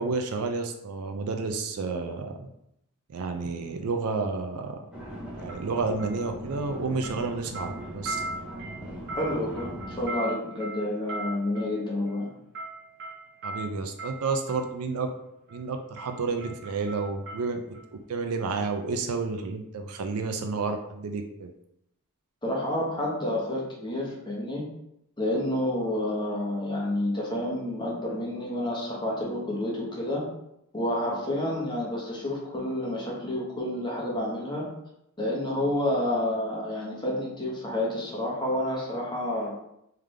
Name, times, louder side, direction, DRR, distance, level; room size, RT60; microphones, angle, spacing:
voice 1, 0.0-2.5 3.1-4.8 5.4-8.2 13.4-15.1 15.5-17.6 18.1-21.5, right 4 dB, 70° right, 6 dB, 0.4 m, -30 dB
sound 1, 3.5-3.8 5.5-6.8 7.0-14.7 15.5-15.7 16.0-17.9 18.2-18.3, right 2 dB, 50° right, 1.2 m, -40 dB
sound 2, 4.9-10.1, equal, 5° right, 0.8 m, -40 dB
voice 2, 9.1-12.3 22.4-24.6 25.2-30.2 30.7-34.7 35.2-39.5, left 1 dB, 20° left, -5 dB, 1.2 m, -29 dB
3.6 x 3.4 x 3.2 m, 0.79 s
head